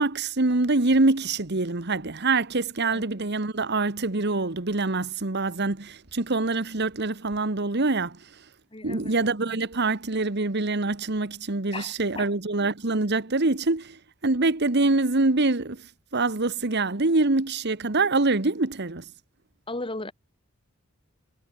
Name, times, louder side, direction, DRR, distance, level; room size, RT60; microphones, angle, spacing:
voice 1, 0.0-8.3 8.8-19.1, right 3 dB, 55° right, 1.5 m, -25 dB
voice 2, 8.7-9.1 11.7-12.3 19.7-20.1, left 2 dB, 25° left, 3.0 m, -35 dB
head